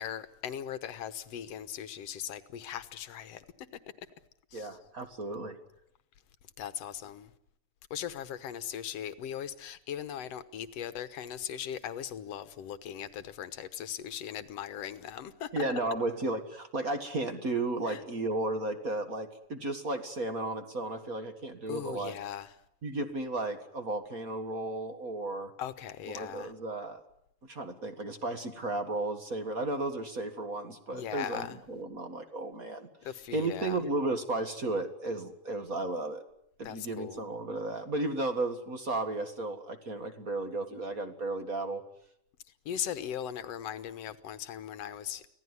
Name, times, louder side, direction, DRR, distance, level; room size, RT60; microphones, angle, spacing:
voice 1, 0.0-3.5 4.5-4.7 6.6-7.3 7.9-15.6 17.9-18.0 21.7-22.5 25.6-26.5 30.9-31.6 33.1-33.8 36.6-37.2 42.7-45.4, left 9 dB, 60° left, 2.1 m, -39 dB
voice 2, 4.5-5.6 15.5-22.2 22.8-25.5 26.1-27.0 27.4-32.9 33.3-36.2 36.6-41.8, right 2 dB, 35° right, 1.8 m, -34 dB
25.5 x 17.0 x 9.8 m
omnidirectional pair, 3.5 m